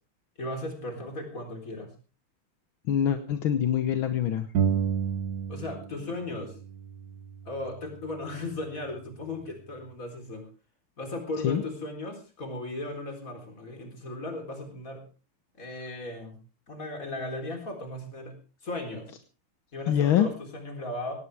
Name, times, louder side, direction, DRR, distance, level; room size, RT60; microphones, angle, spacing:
voice 1, 0.4-1.9 5.5-6.6 7.5-10.5 11.0-15.0 15.6-16.4 16.7-18.3 18.6-19.1 19.7-21.1, left 2 dB, 40° left, 4 dB, 4.2 m, -36 dB
voice 2, 2.9-4.5 11.4-11.6 19.9-20.3, left 9 dB, 75° left, 9 dB, 1.8 m, -24 dB
sound 1, 4.5-6.1 6.3-8.1, right 7 dB, 55° right, 1.5 m, -31 dB
18.0 x 17.0 x 3.4 m, 0.33 s
omnidirectional pair, 2.2 m